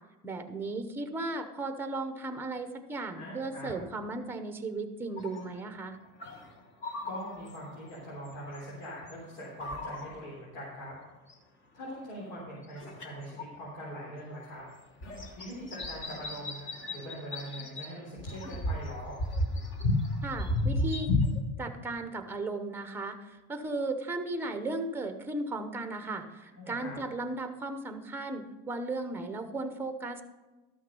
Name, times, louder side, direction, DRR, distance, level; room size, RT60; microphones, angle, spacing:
voice 1, 0.2-6.0 20.2-21.1 21.6-30.2, right 2 dB, 5° right, 7 dB, 0.7 m, -36 dB
voice 2, 3.2-3.7 7.0-10.9 11.7-14.6 15.3-16.6 16.9-19.2 26.5-27.0, equal, 80° left, -5 dB, 3.5 m, -42 dB
sound 1, 5.2-5.6 6.2-8.0 8.3-9.1 9.4-10.3 11.3-11.4 12.6-13.5 14.5-14.6 15.0-17.9 18.2-21.4, left 2 dB, 35° left, 1.3 m, -33 dB
13.0 x 6.4 x 5.3 m, 1.1 s
cardioid pair, 160°, 31 cm